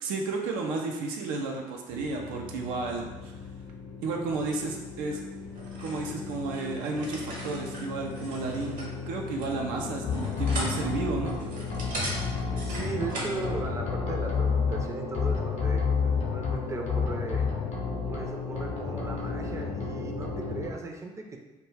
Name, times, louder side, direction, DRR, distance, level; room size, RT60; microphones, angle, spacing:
voice 1, 0.0-3.3 4.0-5.2 5.8-11.4, right 3 dB, 80° right, 1 dB, 0.4 m, -32 dB
sound 1, 1.9-20.7, left 4 dB, 85° left, 0.6 m, -38 dB
sound 2, 5.5-13.4, right 1 dB, 60° right, 0.9 m, -39 dB
sound 3, 10.0-11.4 11.7-13.1 13.4-14.8 15.1-16.5 16.9-18.2 18.6-19.9 20.2-20.7, left 5 dB, 50° left, 0.6 m, -30 dB
voice 2, 12.5-15.8 16.3-17.4 18.1-21.4, right 3 dB, 20° right, 2 dB, 0.4 m, -37 dB
2.2 x 2.1 x 3.2 m, 1.2 s
hypercardioid pair, 60°, 15 cm